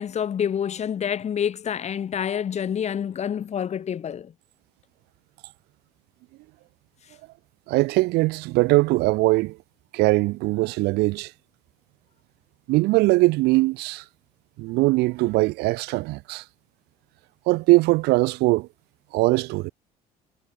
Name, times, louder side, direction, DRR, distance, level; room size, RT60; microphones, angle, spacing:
voice 1, 0.0-4.3, left 8 dB, 45° left, 2.1 m, -27 dB
voice 2, 7.7-9.6 9.9-11.3 12.7-14.0 14.6-16.4 17.5-18.7 19.1-19.7, right 21 dB, 85° right, 1.3 m, -21 dB
cardioid pair, 115°, 17 cm